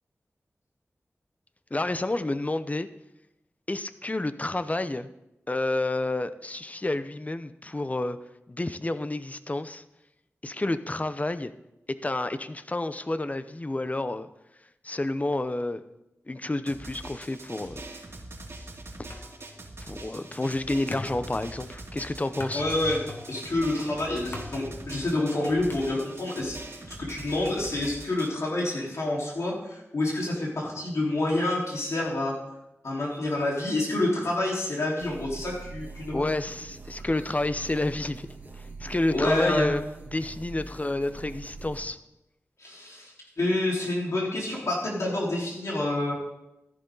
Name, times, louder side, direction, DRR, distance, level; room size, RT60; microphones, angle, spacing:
voice 1, 1.7-2.9 3.7-5.1 5.5-8.2 8.5-9.8 10.4-11.5 11.9-14.3 14.8-15.8 16.3-17.8 19.8-22.6 36.1-38.3 38.6-39.8 40.1-42.0, left 2 dB, 30° left, 12 dB, 0.7 m, -30 dB
Drum, 16.7-28.3, right 2 dB, 65° right, 2.6 m, -43 dB
sound 1, 19.1-26.5, left 2 dB, 50° left, 1.9 m, -44 dB
voice 2, 22.5-26.6 27.0-32.4 32.8-36.3 39.1-39.7 42.6-46.1, left 1 dB, 75° left, -4 dB, 4.2 m, -28 dB
sound 2, 35.0-41.9, right 3 dB, 35° right, 3.0 m, -43 dB
13.5 x 11.5 x 4.0 m, 0.89 s
wide cardioid pair, 55°, 5 cm